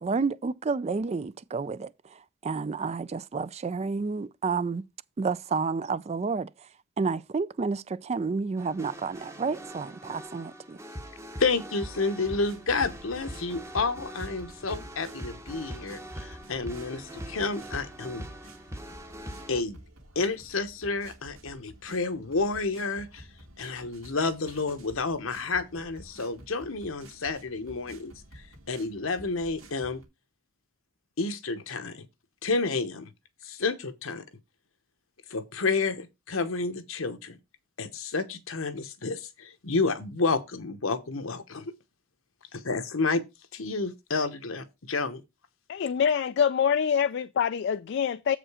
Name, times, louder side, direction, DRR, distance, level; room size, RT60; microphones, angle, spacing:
voice 1, 0.0-4.8 5.2-6.5 7.0-10.8, right 4 dB, 30° right, 0.3 m, -30 dB
sound 1, 8.6-19.6, equal, 15° right, 0.9 m, -42 dB
voice 2, 11.4-18.3 19.5-19.8 20.1-23.3 23.6-28.1 28.7-30.0 31.2-32.0 32.4-33.1 33.4-34.2 35.3-37.4 37.8-41.7 42.5-43.2 43.5-45.2, left 3 dB, 75° left, 1.0 m, -30 dB
sound 2, 12.2-30.1, right 1 dB, 90° right, 2.4 m, -51 dB
voice 3, 45.7-48.4, left 7 dB, 55° left, 0.3 m, -25 dB
7.6 x 5.0 x 4.9 m
head